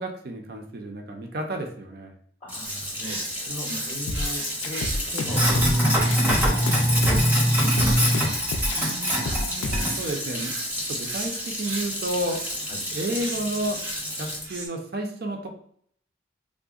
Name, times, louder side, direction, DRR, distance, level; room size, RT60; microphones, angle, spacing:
voice 1, 0.0-2.1 8.8-10.5 10.9-12.4 12.9-13.8 14.2-15.5, right 1 dB, 55° right, 3 dB, 0.5 m, -31 dB
voice 2, 2.4-8.1 12.7-12.8, left 1 dB, 35° left, -4 dB, 0.6 m, -39 dB
Sink (filling or washing), 2.5-14.4, equal, 10° right, 0.6 m, -25 dB
sound 1, 2.6-14.7, right 2 dB, 85° right, 0.8 m, -38 dB
sound 2, 4.1-10.0, left 2 dB, 80° left, 0.4 m, -29 dB
3.6 x 2.1 x 2.3 m, 0.63 s
head